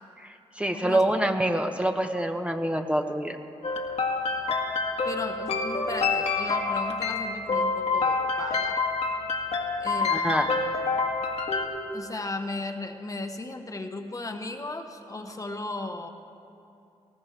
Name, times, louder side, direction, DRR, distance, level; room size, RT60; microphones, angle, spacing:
voice 1, 0.2-3.4 10.1-10.5, right 1 dB, 10° right, 4 dB, 1.2 m, -26 dB
voice 2, 0.7-1.0 5.0-8.8 9.8-10.2 11.9-16.1, left 2 dB, 30° left, 5 dB, 1.3 m, -36 dB
sound 1, 3.6-11.7, left 4 dB, 65° left, 1.9 m, -27 dB
19.5 x 18.0 x 3.4 m, 2.7 s
cardioid pair, 55°, 11 cm